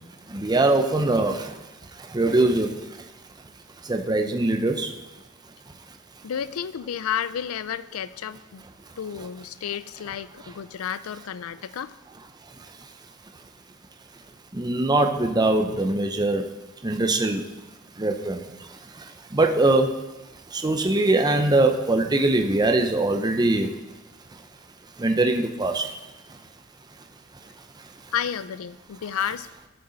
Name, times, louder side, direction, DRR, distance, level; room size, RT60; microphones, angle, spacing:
voice 1, 0.3-1.6 1.9-3.0 3.8-4.9 12.6-12.9 14.5-16.5 16.8-17.4 18.0-20.1 20.5-23.7 24.3-24.4 25.0-26.0 26.3-26.4 27.4-27.5 27.8-27.9, right 2 dB, 20° right, 5 dB, 0.6 m, -23 dB
voice 2, 6.2-8.6 9.0-11.9 28.1-29.5, left 8 dB, 85° left, 16 dB, 0.4 m, -31 dB
12.5 x 6.7 x 4.0 m, 1.1 s
head